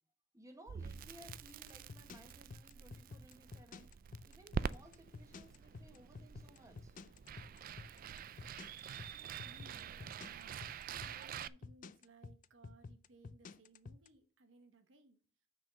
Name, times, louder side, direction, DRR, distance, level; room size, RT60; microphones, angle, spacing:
voice 1, 0.3-3.9 4.2-6.9, right 1 dB, 15° right, 1.4 m, -59 dB
Crackle, 0.7-11.5, right 6 dB, 50° right, 0.3 m, -46 dB
sound 1, 1.3-14.1, left 4 dB, 45° left, 0.4 m, -50 dB
Wind, 5.3-10.8, left 2 dB, 60° left, 0.9 m, -72 dB
voice 2, 9.1-10.6 11.0-15.2, right 2 dB, 85° right, 1.2 m, -63 dB
6.3 x 5.2 x 6.7 m
head